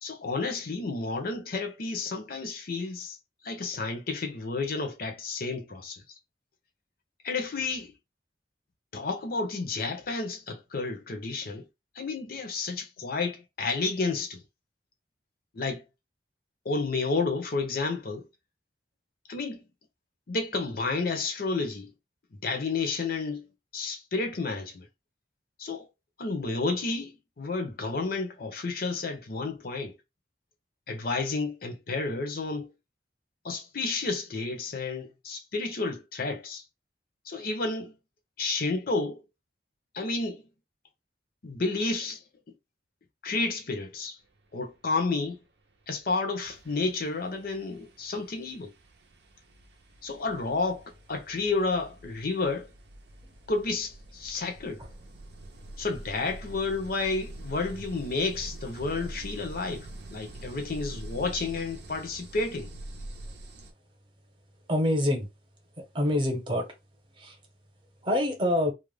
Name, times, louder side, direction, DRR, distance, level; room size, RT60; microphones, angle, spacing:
voice 1, 0.0-3.2 3.4-6.0 7.2-7.9 8.9-11.7 12.0-14.4 15.5-15.8 16.6-18.3 19.3-19.6 20.3-21.9 22.4-23.5 23.7-24.9 25.6-25.9 26.2-29.9 30.9-32.7 33.4-36.6 37.3-37.9 38.4-39.2 39.9-40.4 41.4-42.2 43.2-44.2 44.5-45.4 45.9-48.7 50.0-52.7 53.5-54.8 55.8-62.7, left 3 dB, 55° left, 0.6 m, -31 dB
sound 1, 45.9-46.1 46.4-63.7, right 1 dB, 70° right, 0.6 m, -45 dB
voice 2, 64.7-65.3 65.8-66.7 67.2-67.3 68.0-68.7, left 1 dB, 30° right, 0.8 m, -26 dB
2.4 x 2.1 x 3.2 m
head